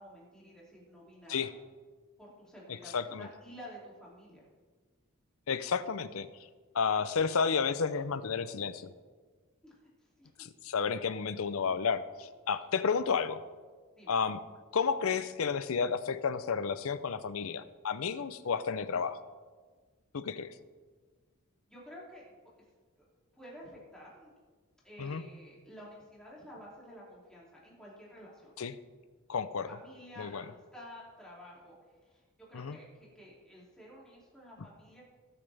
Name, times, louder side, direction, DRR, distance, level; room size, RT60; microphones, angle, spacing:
voice 1, 0.0-1.5 2.2-4.5 9.6-10.3 14.0-14.1 21.7-22.4 23.0-23.1 23.3-24.3 24.8-28.5 29.6-35.0, equal, 5° left, -6 dB, 2.8 m, -51 dB
voice 2, 2.9-3.3 5.5-6.3 6.7-8.9 10.4-13.4 14.1-14.4 14.7-19.2 20.1-20.5 25.0-25.2 28.6-28.7 29.3-29.7 30.2-30.4 32.5-32.8, left 6 dB, 65° left, 13 dB, 0.6 m, -31 dB
18.0 x 7.1 x 3.4 m, 1.4 s
head